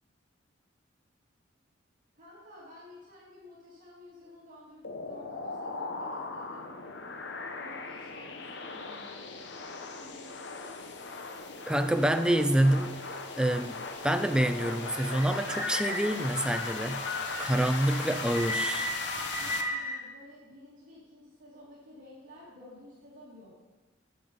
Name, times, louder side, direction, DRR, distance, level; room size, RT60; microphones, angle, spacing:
voice 1, 2.1-6.7 7.6-9.2 9.9-10.8 19.4-23.5, left 1 dB, 45° right, -7 dB, 2.1 m, -52 dB
sound 1, 4.8-19.6, left 4 dB, 60° left, 0.7 m, -39 dB
voice 2, 11.7-13.0 13.4-17.0 17.4-18.9, right 1 dB, 5° right, 9 dB, 0.3 m, -27 dB
sound 2, 14.8-20.0, left 1 dB, 85° left, 3.7 m, -36 dB
8.8 x 6.9 x 5.4 m, 1.2 s
head